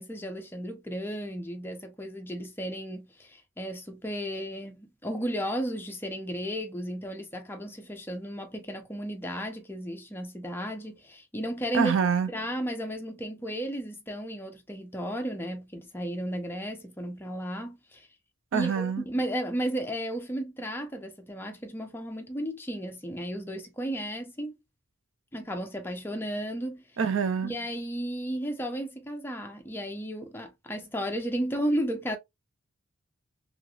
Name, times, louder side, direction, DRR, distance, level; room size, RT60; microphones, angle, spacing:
voice 1, 0.0-11.9 12.3-18.1 18.5-24.6 25.3-26.8 27.4-32.2, equal, 10° left, 0.5 m, -34 dB
voice 2, 11.7-12.3 18.5-19.1 27.0-27.5, right 6 dB, 65° right, 0.4 m, -26 dB
3.1 x 2.4 x 2.3 m
head